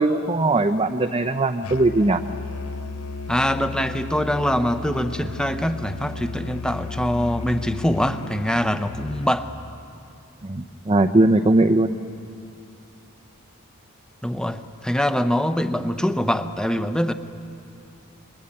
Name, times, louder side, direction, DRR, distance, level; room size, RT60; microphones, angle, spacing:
voice 1, 0.0-2.2 10.4-12.0, right 2 dB, 25° right, 6 dB, 0.7 m, -19 dB
Musical instrument, 1.6-9.4, left 4 dB, 85° left, 0.9 m, -34 dB
voice 2, 3.3-9.5 14.2-17.1, equal, 5° left, 9 dB, 0.9 m, -23 dB
28.5 x 22.0 x 8.8 m, 2.5 s
head